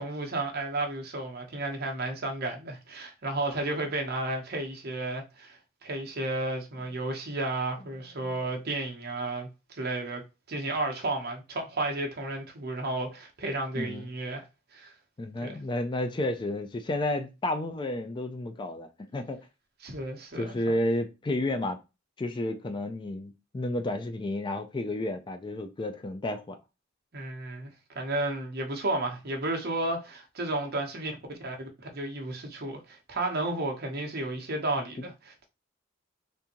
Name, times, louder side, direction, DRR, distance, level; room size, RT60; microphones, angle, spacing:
voice 1, 0.0-10.2 10.5-14.4 14.7-14.9 15.4-15.6 19.8-20.8 27.1-35.4, right 2 dB, 50° right, 0.9 m, -33 dB
voice 2, 13.8-14.1 15.2-19.5 20.3-21.8 22.2-26.6 35.0-35.1, left 1 dB, 25° left, 0.4 m, -31 dB
3.6 x 2.6 x 2.9 m
head